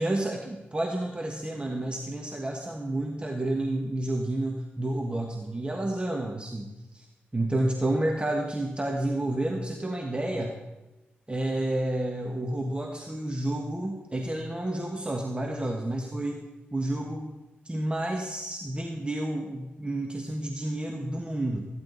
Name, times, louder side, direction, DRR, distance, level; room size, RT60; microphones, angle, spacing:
voice 1, 0.0-7.1 7.3-10.6 11.3-16.4 16.7-17.3 17.6-21.7, right 1 dB, 25° right, 2 dB, 1.5 m, -30 dB
14.5 x 10.5 x 4.1 m, 1.0 s
supercardioid pair, 45°, 4 cm